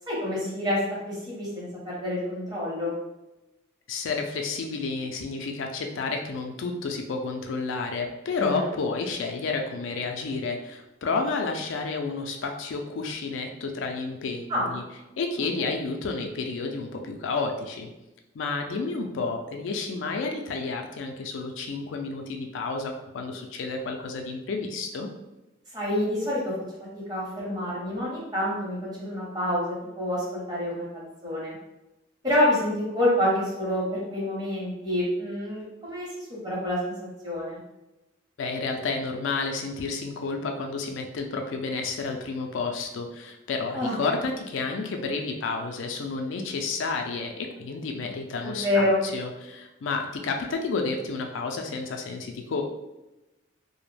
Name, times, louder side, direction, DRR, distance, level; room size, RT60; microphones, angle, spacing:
voice 1, 0.1-0.8 1.0-2.9 8.4-8.6 14.5-14.8 25.7-26.5 26.9-31.5 32.2-36.9 37.2-37.6 43.7-43.9 48.4-48.9, left 1 dB, 20° right, -6 dB, 0.8 m, -27 dB
voice 2, 3.9-14.8 15.2-17.9 18.3-25.1 38.4-48.8 49.1-52.6, left 4 dB, 75° left, 3 dB, 0.4 m, -31 dB
2.3 x 2.0 x 3.2 m, 0.98 s
head